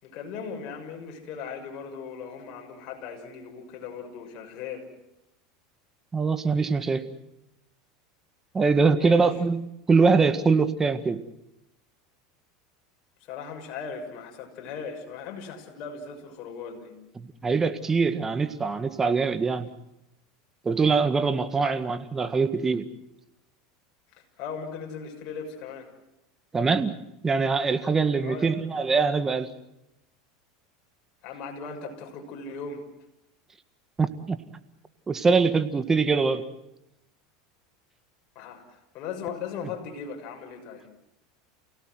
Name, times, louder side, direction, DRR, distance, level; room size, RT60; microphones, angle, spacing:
voice 1, 0.0-4.9 9.0-9.3 13.3-16.9 21.6-21.8 24.1-25.9 28.2-28.6 31.2-32.9 38.3-40.9, left 6 dB, 50° left, 3 dB, 6.2 m, -38 dB
voice 2, 6.1-7.0 8.5-11.2 17.2-19.7 20.7-22.9 26.5-26.9 27.2-29.5 34.0-34.4 35.1-36.4, right 4 dB, 20° right, 10 dB, 1.8 m, -23 dB
28.5 x 18.0 x 7.8 m, 0.87 s
supercardioid pair, 110°, 2 cm